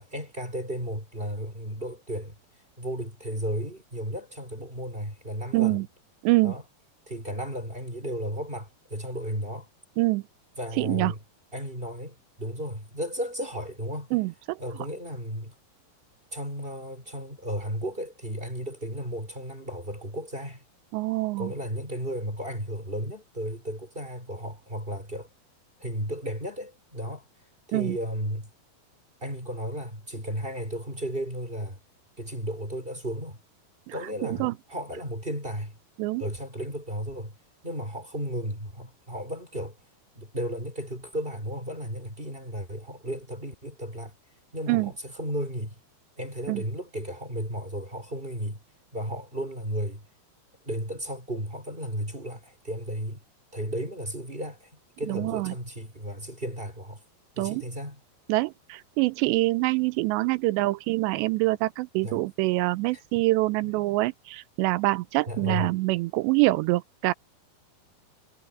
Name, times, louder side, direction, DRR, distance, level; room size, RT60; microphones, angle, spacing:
voice 1, 0.0-2.3 2.8-5.8 6.4-6.6 7.1-9.7 10.6-11.2 11.5-14.1 14.6-15.6 16.3-20.6 21.4-25.3 25.8-27.3 27.7-28.5 29.2-31.8 32.2-33.4 33.9-35.7 36.2-37.3 37.6-39.8 40.1-44.1 44.5-45.8 46.2-48.6 48.9-50.0 50.6-53.2 53.5-54.7 55.0-57.0 57.4-58.0 62.0-62.2 62.9-63.0 63.6-63.8 65.3-65.8, equal, 10° right, 4.6 m, -34 dB
voice 2, 5.5-5.9 6.2-6.5 10.0-10.2 10.8-11.1 14.1-14.6 20.9-21.5 27.7-28.0 33.9-34.0 34.2-34.5 36.0-36.2 44.7-44.9 46.5-46.6 55.1-55.5 57.4-57.6 58.3-67.1, right 21 dB, 85° right, 2.8 m, -25 dB
omnidirectional pair, 5.0 m